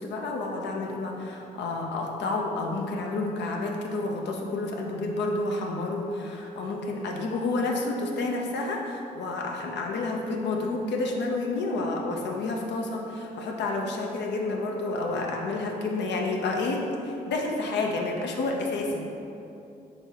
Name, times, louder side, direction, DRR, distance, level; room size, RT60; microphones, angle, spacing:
voice 1, 0.0-16.8 17.3-19.0, left 2 dB, 65° left, 1 dB, 0.6 m, -30 dB
5.0 x 3.6 x 2.8 m, 2.7 s
hypercardioid pair, 45°, 20 cm